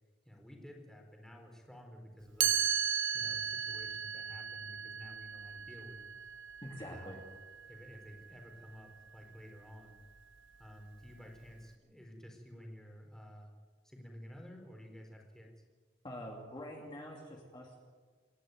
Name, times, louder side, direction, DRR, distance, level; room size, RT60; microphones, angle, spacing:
voice 1, 0.3-2.7 3.1-6.1 6.9-7.2 7.7-10.0 10.6-13.5 13.8-15.6, equal, 5° left, 1 dB, 4.0 m, -52 dB
Chime, 2.4-8.3, right 9 dB, 85° right, 1.3 m, -36 dB
voice 2, 6.6-7.2 16.0-17.8, left 1 dB, 25° left, -2 dB, 2.7 m, -45 dB
28.0 x 11.5 x 9.4 m, 1.5 s
head